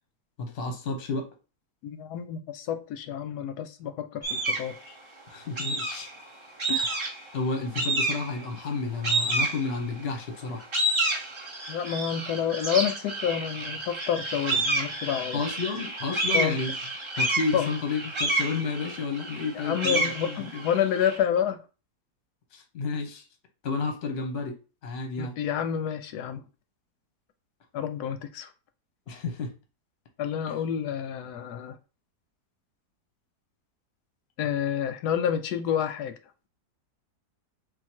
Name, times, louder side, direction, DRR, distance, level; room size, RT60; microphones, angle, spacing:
voice 1, 0.4-1.3 5.3-6.1 6.7-7.0 7.3-10.6 15.3-16.8 17.2-20.7 22.5-23.3 23.6-24.5 24.8-25.3 29.1-29.5 30.5-30.6, left 4 dB, 50° left, 0.9 m, -31 dB
voice 2, 1.8-5.0 11.7-15.4 16.3-16.6 17.5-17.7 19.5-21.6 25.2-26.5 27.7-28.5 30.2-31.8 34.4-36.1, left 9 dB, 80° left, 1.1 m, -29 dB
sound 1, 4.2-4.7 5.6-6.2 6.6-7.3 7.7-8.4 9.0-10.0 10.5-21.2, right 2 dB, 30° right, 0.5 m, -29 dB
3.8 x 2.5 x 4.4 m
omnidirectional pair, 1.7 m